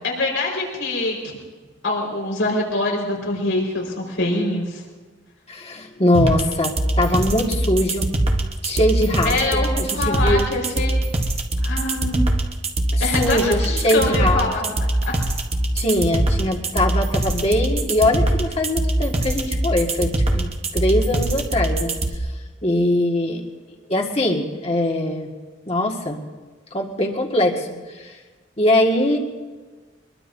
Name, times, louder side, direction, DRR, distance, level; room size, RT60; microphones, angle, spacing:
voice 1, 0.0-1.3 1.8-4.8 9.2-10.9 11.6-12.3 13.0-13.6 13.9-14.6 15.1-15.2, left 2 dB, 85° left, -2 dB, 4.8 m, -24 dB
voice 2, 5.5-8.1 8.6-10.5 13.0-14.7 15.8-22.3 22.6-23.5 23.9-25.3 25.7-26.2 26.7-28.2 28.6-29.2, left 1 dB, 35° left, 1 dB, 1.8 m, -22 dB
sound 1, 6.1-22.1, right 1 dB, 30° right, 1.2 m, -22 dB
23.5 x 21.5 x 2.7 m, 1.4 s
head